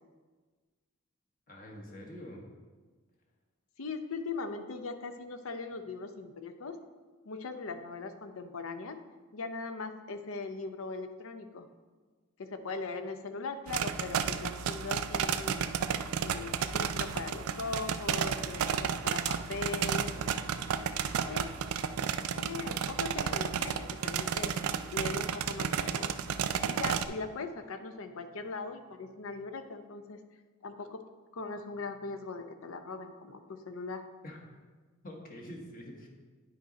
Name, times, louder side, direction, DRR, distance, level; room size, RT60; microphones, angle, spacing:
voice 1, 1.5-2.4 34.2-34.4 35.0-36.1, left 1 dB, 40° left, 0 dB, 1.2 m, -45 dB
voice 2, 3.8-6.8 7.3-9.0 9.3-11.7 12.4-15.7 16.2-20.1 21.2-21.5 22.4-24.5 24.9-26.2 26.7-30.2 30.6-31.0 31.3-34.1, left 4 dB, 70° left, 8 dB, 0.6 m, -40 dB
sound 1, 13.7-27.1, right 7 dB, 80° right, 0.4 m, -32 dB
9.4 x 4.0 x 5.0 m, 1.4 s
head